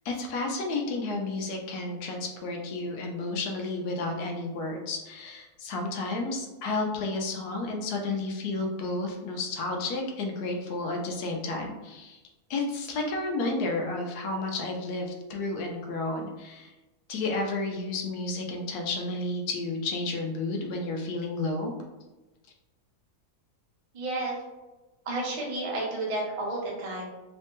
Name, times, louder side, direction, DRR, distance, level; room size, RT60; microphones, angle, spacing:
voice 1, 0.0-12.2 12.5-16.7 17.1-21.7, left 2 dB, 75° left, 2 dB, 1.1 m, -31 dB
voice 2, 23.9-24.4 25.1-27.1, right 2 dB, 50° right, -3 dB, 0.4 m, -31 dB
3.2 x 2.1 x 3.0 m, 1.1 s
omnidirectional pair, 1.7 m